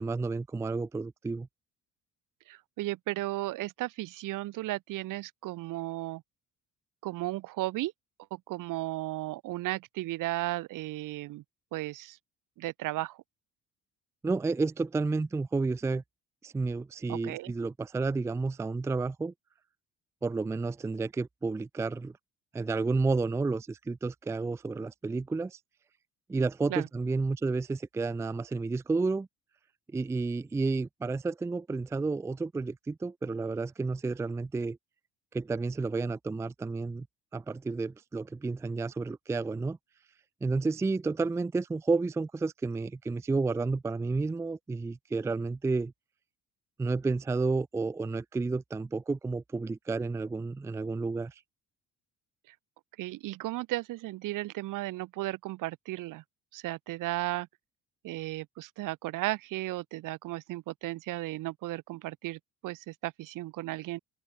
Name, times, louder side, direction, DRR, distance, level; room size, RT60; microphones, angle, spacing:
voice 1, 0.0-1.5 14.2-16.0 16.4-19.3 20.2-22.1 22.5-25.6 26.3-29.3 29.9-34.8 35.3-37.1 37.3-39.8 40.4-45.9 46.8-51.4, right 3 dB, 10° right, 0.4 m, -31 dB
voice 2, 2.5-6.2 7.0-7.9 8.3-11.4 11.7-12.2 12.6-13.2 17.1-17.5 26.7-26.9 53.0-56.2 56.5-57.5 58.0-64.0, right 17 dB, 75° right, 3.6 m, -35 dB
open air
cardioid pair, 160°, 32 cm